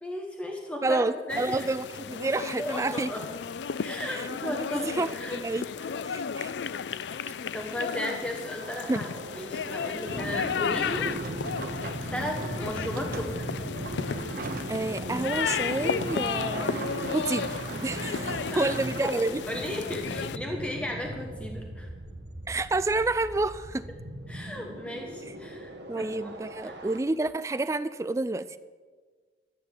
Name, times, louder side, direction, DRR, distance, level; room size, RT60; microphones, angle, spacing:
voice 1, 0.0-1.7 2.6-3.2 3.8-5.4 7.5-11.1 12.1-13.5 18.1-18.6 19.0-19.1 19.5-21.9 24.3-26.3 26.6-26.7, left 1 dB, 5° left, 0 dB, 1.2 m, -35 dB
voice 2, 0.8-3.1 4.1-5.7 6.0-6.5 8.9-9.0 14.7-16.9 17.1-17.6 17.8-19.4 22.5-23.8 25.9-28.6, right 2 dB, 15° right, 14 dB, 0.3 m, -29 dB
sound 1, 1.3-20.4, left 6 dB, 75° left, 0.4 m, -34 dB
sound 2, 8.6-27.0, right 1 dB, 70° right, 1.6 m, -42 dB
sound 3, 10.1-19.0, right 2 dB, 50° right, 0.9 m, -36 dB
13.0 x 8.4 x 9.3 m, 1.5 s
head